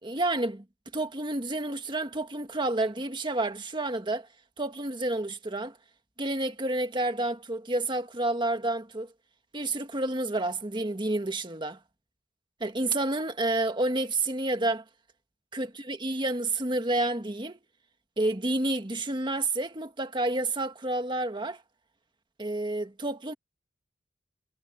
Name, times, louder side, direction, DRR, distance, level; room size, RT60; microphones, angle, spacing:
voice 1, 0.0-0.6 0.9-4.3 4.6-5.8 6.2-9.1 9.5-11.8 12.6-14.8 15.5-17.6 18.2-21.6 22.4-23.3, right 2 dB, 25° right, 1.8 m, -29 dB
head